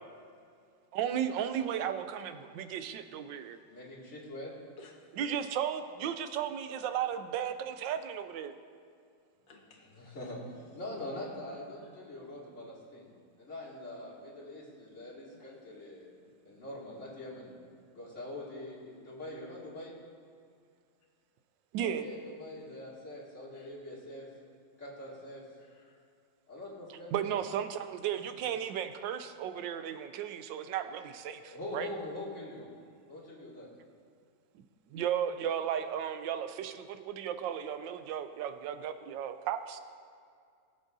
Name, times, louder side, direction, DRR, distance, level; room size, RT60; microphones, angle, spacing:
voice 1, 0.9-3.6 5.2-8.5 21.7-22.1 27.1-31.9 34.9-39.8, right 9 dB, 85° right, 9 dB, 1.3 m, -35 dB
voice 2, 3.6-4.5 10.0-16.1 16.4-17.5 17.9-20.0 21.8-24.3 24.8-25.4 26.5-27.1 31.2-32.7 33.1-33.7, left 1 dB, 40° left, -6 dB, 2.7 m, -43 dB
voice 3, 4.8-5.2 9.5-10.3 11.8-12.0 15.3-15.5 17.0-17.1 23.5-23.7 25.6-26.1 28.1-28.3, left 2 dB, 85° left, 0 dB, 2.2 m, -59 dB
20.5 x 7.3 x 2.7 m, 2.2 s
omnidirectional pair, 2.0 m